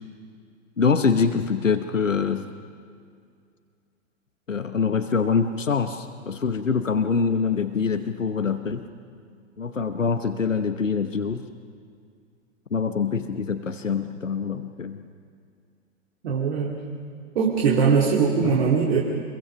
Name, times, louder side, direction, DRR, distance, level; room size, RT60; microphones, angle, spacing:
voice 1, 0.8-2.5 4.5-8.8 9.6-11.4 12.7-15.0 18.4-18.6, left 5 dB, 80° left, 9 dB, 1.1 m, -24 dB
voice 2, 16.2-16.7 17.3-19.0, right 6 dB, 55° right, -2 dB, 2.6 m, -21 dB
25.5 x 22.5 x 5.8 m, 2.2 s
figure-of-eight pair, 100°, 37 cm